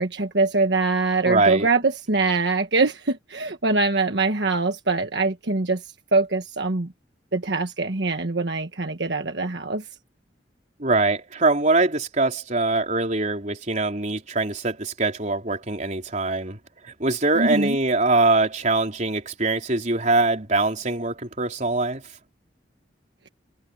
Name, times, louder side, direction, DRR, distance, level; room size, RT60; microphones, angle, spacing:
voice 1, 0.0-6.9 7.3-9.9 17.3-17.8, right 3 dB, 70° right, 1.4 m, -23 dB
voice 2, 1.2-1.7 10.8-16.6 17.0-22.0, right 3 dB, 45° right, 4.1 m, -23 dB
head